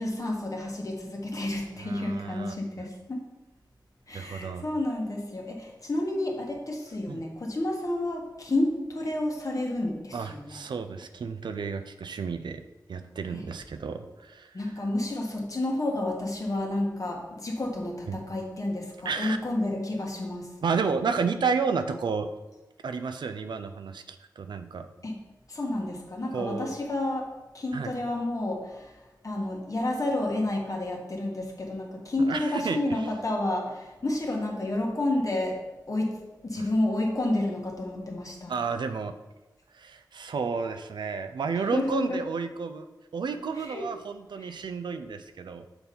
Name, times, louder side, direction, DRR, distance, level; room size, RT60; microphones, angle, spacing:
voice 1, 0.0-3.2 4.1-10.6 13.3-13.4 14.5-20.5 25.0-25.2 25.5-28.9 29.2-35.6 35.9-36.2 36.4-38.5 41.5-42.2 43.6-43.8 44.4-44.6, left 1 dB, 50° left, 0 dB, 1.5 m, -30 dB
voice 2, 1.8-2.5 4.1-4.6 7.1-7.2 10.1-12.6 12.9-14.6 18.1-18.2 19.0-19.4 20.6-22.3 22.8-24.9 26.3-26.7 27.7-27.9 32.3-32.8 38.5-39.2 39.7-42.9 43.1-45.7, right 5 dB, 90° right, 8 dB, 0.5 m, -31 dB
6.9 x 4.3 x 5.4 m, 1.1 s
cardioid pair, 55°, 8 cm